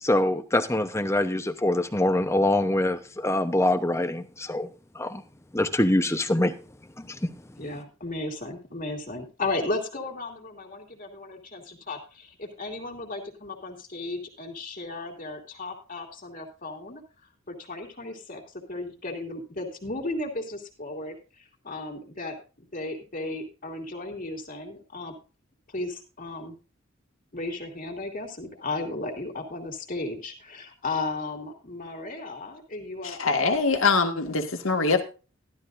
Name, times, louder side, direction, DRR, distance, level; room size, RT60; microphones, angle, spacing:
voice 1, 0.0-4.7 5.0-5.2 5.5-6.5 7.0-7.3, left 1 dB, 15° left, 0.9 m, -24 dB
voice 2, 7.6-17.0 17.5-18.4 18.7-25.1 25.7-26.5 27.3-33.5, left 2 dB, 40° left, 2.6 m, -35 dB
voice 3, 33.0-35.0, left 4 dB, 70° left, 2.0 m, -23 dB
14.0 x 12.5 x 2.6 m
head